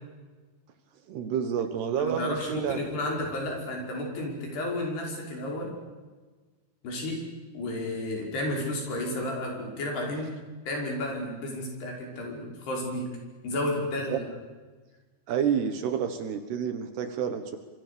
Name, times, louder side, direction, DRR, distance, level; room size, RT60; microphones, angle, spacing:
voice 1, 1.1-2.9 14.1-14.2 15.3-17.6, right 8 dB, 65° right, 8 dB, 3.1 m, -29 dB
voice 2, 2.0-5.7 6.8-7.2 7.5-10.3 10.7-13.1 13.4-14.3, left 1 dB, 55° left, 0 dB, 7.3 m, -32 dB
26.0 x 25.5 x 6.9 m, 1.3 s
omnidirectional pair, 5.5 m